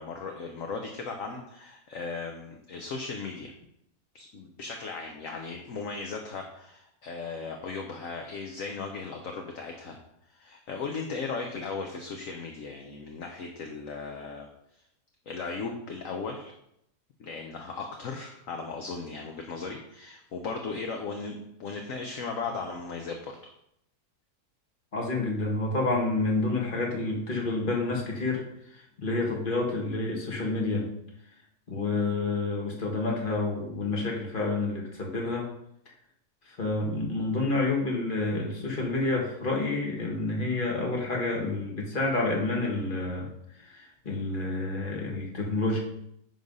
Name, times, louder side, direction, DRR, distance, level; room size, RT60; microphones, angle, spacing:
voice 1, 0.0-3.5 4.1-10.0 10.3-14.5 15.3-16.5 17.2-23.4, left 4 dB, 60° left, 3 dB, 1.2 m, -37 dB
voice 2, 24.9-30.9 31.7-35.5 36.5-43.3 43.6-45.8, left 2 dB, 30° left, -1 dB, 1.8 m, -29 dB
10.0 x 4.0 x 5.4 m, 0.76 s
omnidirectional pair, 1.7 m